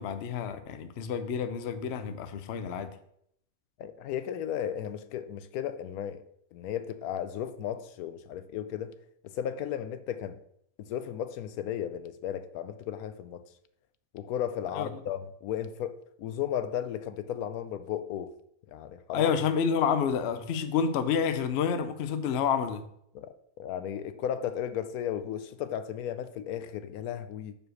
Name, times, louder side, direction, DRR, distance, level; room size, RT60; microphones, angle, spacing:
voice 1, 0.0-2.9 14.7-14.9 19.1-22.8, left 7 dB, 60° left, 0.8 m, -29 dB
voice 2, 3.8-6.2 6.5-8.9 9.2-10.4 10.8-13.4 14.1-18.3 18.7-19.3 23.1-27.6, left 10 dB, 80° left, 1.0 m, -35 dB
5.1 x 4.8 x 6.3 m
omnidirectional pair, 1.5 m